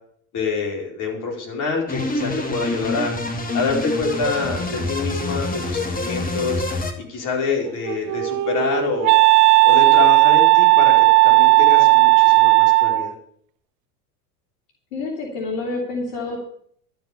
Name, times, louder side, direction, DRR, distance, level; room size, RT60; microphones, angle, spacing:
voice 1, 0.3-3.1 3.5-6.6 7.0-9.2 9.6-13.1, left 4 dB, 45° left, 1 dB, 4.7 m, -26 dB
sound 1, 1.9-6.9, left 2 dB, 20° left, 2.3 m, -26 dB
Wind instrument woodwind instrument, 7.7-13.1, right 25 dB, 45° right, 0.6 m, -14 dB
voice 2, 14.9-16.4, left 3 dB, 70° left, 0 dB, 3.3 m, -28 dB
12.5 x 7.0 x 8.4 m, 0.63 s
hypercardioid pair, 85°, 43 cm